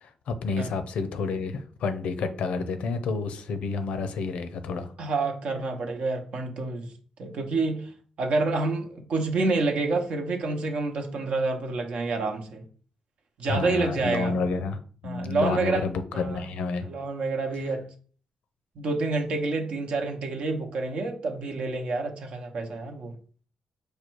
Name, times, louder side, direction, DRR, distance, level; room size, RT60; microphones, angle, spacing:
voice 1, 0.0-4.9 13.4-16.9, left 4 dB, 80° left, 0.6 m, -30 dB
voice 2, 5.0-6.9 7.2-7.9 8.2-12.6 13.4-14.4 15.0-15.8 16.1-16.4 16.8-17.9 18.8-23.1, right 3 dB, 70° right, 0.8 m, -28 dB
4.9 x 2.3 x 4.5 m
cardioid pair, 75°, 2 cm